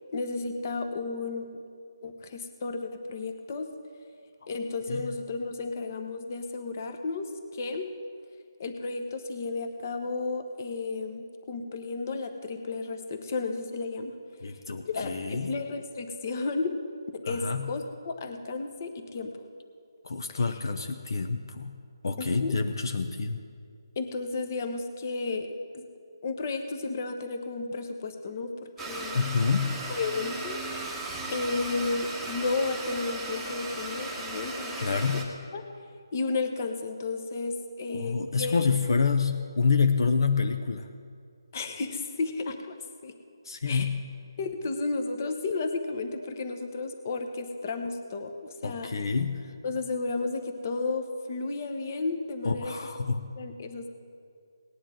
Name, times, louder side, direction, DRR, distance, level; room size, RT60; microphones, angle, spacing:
voice 1, 0.1-1.5 2.0-3.7 4.5-7.9 8.6-14.1 14.8-16.8 17.1-19.4 20.3-20.5 22.2-22.6 24.0-25.8 26.2-29.2 29.9-30.8 31.3-34.7 35.1-35.2 35.5-35.6 36.1-38.7 41.5-42.8 43.0-43.1 43.7-43.9 44.4-48.9 49.6-52.7 53.4-53.9, left 3 dB, 35° left, 6 dB, 1.1 m, -33 dB
voice 2, 14.4-15.5 17.3-17.7 20.0-21.7 22.0-23.4 29.1-29.7 34.8-35.2 37.9-40.9 43.4-44.0 48.6-49.5 52.4-53.3, left 5 dB, 60° left, 7 dB, 0.8 m, -27 dB
Domestic sounds home sounds, 28.8-35.2, right 2 dB, 5° right, 1.1 m, -36 dB
19.0 x 10.0 x 3.8 m, 2.3 s
figure-of-eight pair, 160°, 2 cm